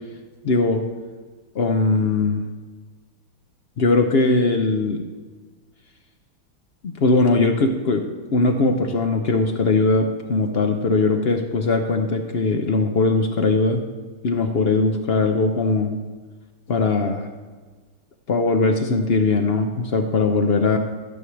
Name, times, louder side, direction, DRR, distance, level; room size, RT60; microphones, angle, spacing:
voice 1, 0.4-0.8 1.5-2.4 3.8-5.0 6.8-8.0 8.3-13.8 14.2-15.9 16.7-17.3 18.3-20.8, left 3 dB, 60° left, 4 dB, 0.6 m, -20 dB
12.5 x 4.7 x 7.1 m, 1.4 s
omnidirectional pair, 1.9 m